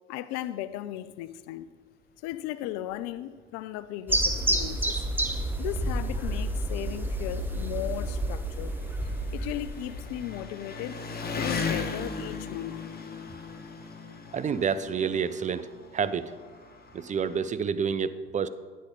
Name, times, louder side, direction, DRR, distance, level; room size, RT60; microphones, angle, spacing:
voice 1, 0.1-1.7 2.2-5.1 5.6-8.7 9.3-11.0 11.3-12.8, left 13 dB, 65° left, 0.5 m, -36 dB
Engine, 2.9-3.0 3.4-3.5 4.4-4.5 4.8-17.5, left 4 dB, 30° left, 1.1 m, -39 dB
sound 1, 4.1-10.4, right 1 dB, 5° right, 1.0 m, -30 dB
voice 2, 14.3-16.3 16.9-18.5, right 6 dB, 25° right, 0.4 m, -29 dB
9.5 x 4.2 x 5.2 m
hypercardioid pair, 60°, 29 cm